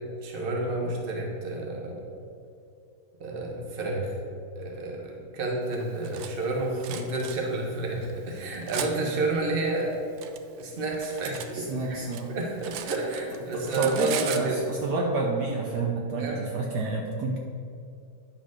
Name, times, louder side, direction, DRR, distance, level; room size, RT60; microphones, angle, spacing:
voice 1, 0.2-2.1 3.2-4.1 4.6-10.0 10.6-12.0 12.3-14.6 16.2-16.4, right 2 dB, 35° right, 0 dB, 1.2 m, -30 dB
Cutlery silverware, 5.7-6.3 6.8-7.3 8.0-8.9 9.8-11.5 11.8-13.4 13.6-14.5, right 9 dB, 80° right, 1.3 m, -37 dB
voice 2, 11.5-12.3 13.5-17.4, right 3 dB, 60° right, -1 dB, 1.3 m, -29 dB
10.0 x 4.0 x 6.4 m, 2.4 s
omnidirectional pair, 2.2 m